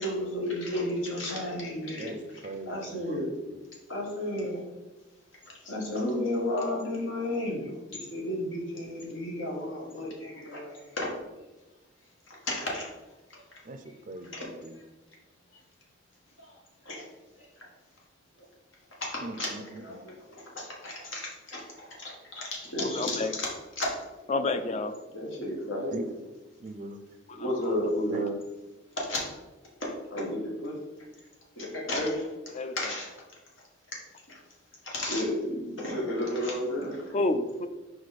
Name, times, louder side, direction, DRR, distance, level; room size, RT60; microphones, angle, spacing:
voice 1, 0.0-2.1 2.7-3.3 3.9-4.6 5.7-11.1 12.5-12.9 14.3-14.4 16.9-17.0 19.1-21.2 21.5-21.6 22.0-23.5 23.8-23.9 25.1-26.0 27.4-28.3 29.0-29.2 29.8-30.8 31.6-32.2 32.8-33.1 34.9-37.0, left 1 dB, 85° left, -2 dB, 1.7 m, -32 dB
voice 2, 2.0-3.6 13.7-14.8 19.2-20.0 25.9-26.0 26.6-27.0 28.1-28.2, right 2 dB, 40° right, 8 dB, 0.4 m, -41 dB
voice 3, 22.9-23.3 24.3-25.0 27.3-28.1 32.5-32.9 37.1-37.7, left 2 dB, 35° left, 10 dB, 0.4 m, -30 dB
5.0 x 4.8 x 4.1 m, 1.1 s
head